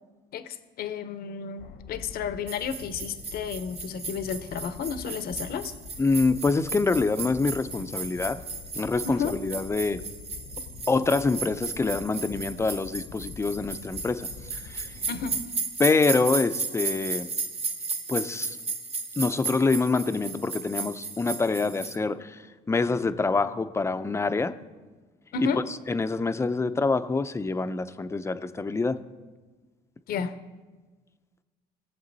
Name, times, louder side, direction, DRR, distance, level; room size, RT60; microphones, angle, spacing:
voice 1, 0.3-5.7 9.0-9.4 15.1-15.4 25.3-25.6 30.1-30.3, left 6 dB, 65° left, 11 dB, 0.9 m, -32 dB
sound 1, 1.6-15.4, left 5 dB, 85° left, 1.3 m, -45 dB
sound 2, 2.5-22.0, right 4 dB, 35° right, 1.4 m, -35 dB
voice 2, 6.0-8.4 8.7-10.0 10.9-14.3 14.6-14.9 15.8-17.3 18.1-18.6 19.2-22.4 22.7-24.5 25.4-25.6 25.9-29.0, left 3 dB, 15° left, 10 dB, 0.6 m, -26 dB
21.0 x 7.5 x 4.0 m, 1.3 s
cardioid pair, 110°, 17 cm